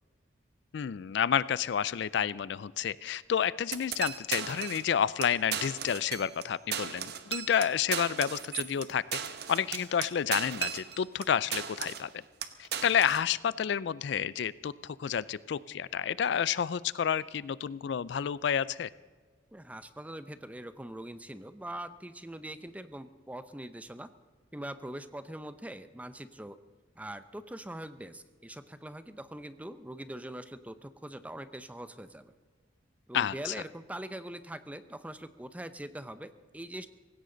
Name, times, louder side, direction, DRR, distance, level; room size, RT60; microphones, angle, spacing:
voice 1, 0.7-9.0 9.5-12.1 12.6-18.9 33.1-33.5, left 8 dB, 60° left, 19 dB, 0.4 m, -30 dB
sound 1, 3.7-4.9 5.2-5.3 5.5-6.4 6.7-11.2 11.5-12.1 12.4-13.2, right 9 dB, 55° right, 1.0 m, -36 dB
voice 2, 19.5-24.1 24.5-26.6 27.0-32.3 33.1-36.9, right 1 dB, 10° right, 12 dB, 0.6 m, -42 dB
18.0 x 16.5 x 3.9 m, 1.5 s
head